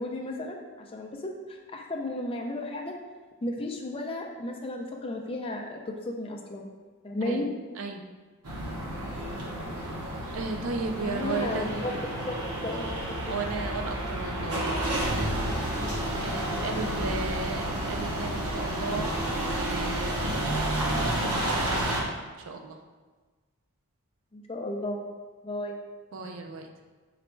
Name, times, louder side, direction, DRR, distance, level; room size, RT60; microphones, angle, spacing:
voice 1, 0.0-3.0 3.4-6.7 7.0-7.5 11.0-13.1 24.3-25.1 25.4-25.8, left 1 dB, 25° left, 1 dB, 0.4 m, -34 dB
sound 1, 8.5-22.0, right 1 dB, 80° right, 0.8 m, -30 dB
voice 2, 10.3-11.8 13.2-15.7 15.9-20.7 21.0-22.1 22.5-22.8 26.1-26.7, right 3 dB, 60° right, 4 dB, 0.4 m, -35 dB
4.0 x 2.2 x 4.3 m, 1.3 s
head